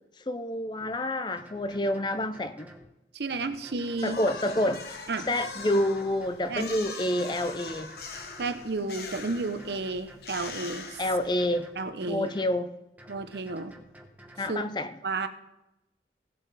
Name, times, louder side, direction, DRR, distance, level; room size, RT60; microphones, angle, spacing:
voice 1, 0.3-2.7 4.0-7.9 11.0-11.7 12.1-12.7 14.4-14.9, left 1 dB, 25° left, 11 dB, 0.5 m, -28 dB
sound 1, 0.8-1.0 1.4-2.9 3.3-4.8 5.2-6.8 7.2-8.7 9.1-10.6 11.0-12.6 13.0-14.5, equal, 10° right, 1.0 m, -51 dB
voice 2, 3.1-4.2 5.1-5.3 6.5-7.3 8.4-11.0 11.8-12.3 13.1-13.7 14.5-14.6 15.0-15.3, right 3 dB, 70° right, 10 dB, 0.8 m, -32 dB
sound 2, 4.0-11.6, left 4 dB, 65° left, 1.2 m, -42 dB
17.0 x 7.5 x 4.1 m, 0.91 s
head